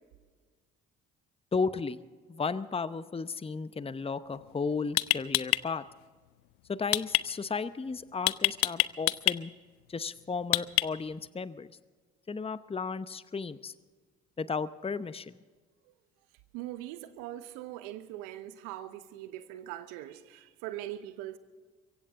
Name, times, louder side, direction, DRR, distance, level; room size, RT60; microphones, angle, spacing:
voice 1, 1.5-2.0 2.3-5.8 6.7-9.5 9.9-11.7 12.3-13.7 14.4-15.4, left 4 dB, 15° left, 0.8 m, -34 dB
sound 1, 4.3-4.5 5.0-5.6 6.9-7.2 8.3-9.4 10.5-11.1, left 22 dB, 75° left, 0.6 m, -25 dB
voice 2, 16.5-21.4, right 13 dB, 75° right, 1.1 m, -41 dB
23.5 x 16.0 x 3.7 m
hypercardioid pair, 50°, 33 cm